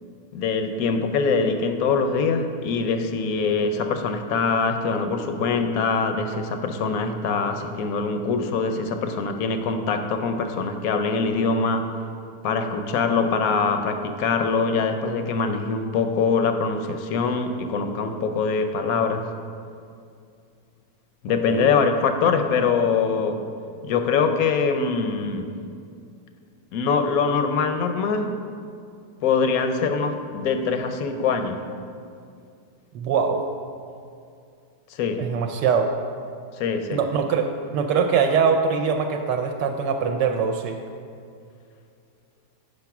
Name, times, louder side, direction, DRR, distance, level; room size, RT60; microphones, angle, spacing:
voice 1, 0.3-11.9 12.4-19.3 21.2-23.4 23.8-25.5 26.7-28.4 29.2-31.6 34.9-35.3 36.6-37.0, left 5 dB, 70° left, 7 dB, 0.8 m, -23 dB
voice 2, 32.9-33.4 35.2-35.9 36.9-40.8, right 6 dB, 75° right, 4 dB, 1.2 m, -22 dB
8.2 x 5.3 x 5.8 m, 2.4 s
omnidirectional pair, 2.0 m